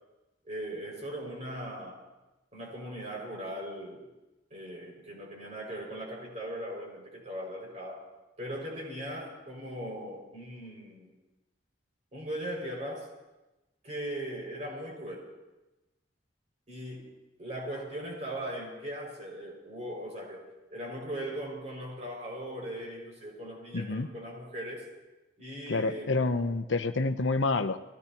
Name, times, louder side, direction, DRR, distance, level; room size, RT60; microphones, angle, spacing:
voice 1, 0.4-2.0 2.5-4.1 4.5-8.0 8.4-11.1 12.1-13.1 13.8-15.3 16.7-24.9 25.4-26.3, right 1 dB, 40° right, -2 dB, 5.8 m, -39 dB
voice 2, 23.7-24.1 25.7-27.8, left 3 dB, 80° left, 9 dB, 0.7 m, -28 dB
23.5 x 17.0 x 3.0 m, 1.1 s
head